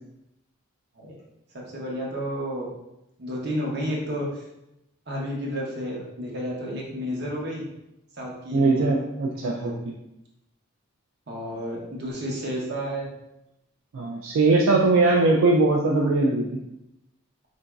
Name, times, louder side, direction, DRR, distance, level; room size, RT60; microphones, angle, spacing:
voice 1, 1.5-2.7 3.2-4.4 5.1-7.6 8.2-8.9 9.4-9.8 11.3-13.1, equal, 50° right, -2 dB, 0.7 m, -31 dB
voice 2, 8.5-9.9 13.9-16.5, right 3 dB, 75° right, -1 dB, 0.3 m, -21 dB
3.8 x 2.6 x 2.2 m, 0.86 s
head